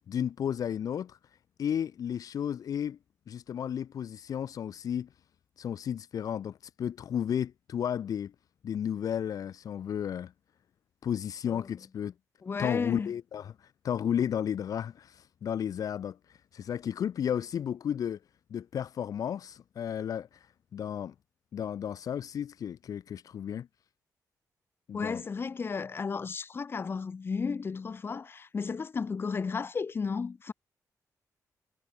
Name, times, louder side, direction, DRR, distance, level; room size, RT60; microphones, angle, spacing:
voice 1, 0.1-1.2 1.6-3.0 3.3-5.1 5.6-8.3 8.6-10.3 11.0-12.1 12.6-13.5 13.8-16.2 16.5-18.2 18.5-20.3 20.7-21.1 21.5-23.7 24.9-25.2, left 9 dB, 65° left, 2.6 m, -33 dB
voice 2, 11.5-11.8 12.4-13.1 24.9-30.5, left 5 dB, 35° left, 4.2 m, -33 dB
cardioid pair, 130°, 7 cm